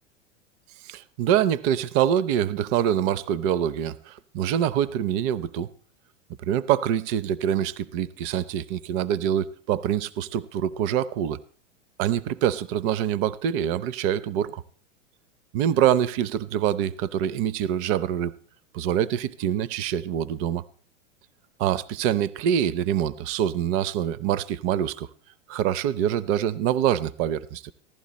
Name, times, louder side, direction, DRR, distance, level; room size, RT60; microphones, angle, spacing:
voice 1, 0.8-5.7 6.4-11.4 12.0-14.6 15.5-18.3 18.7-20.6 21.6-25.1 25.5-27.7, right 10 dB, 35° right, 0.6 m, -25 dB
15.5 x 11.5 x 4.2 m
hypercardioid pair, 105°, 37 cm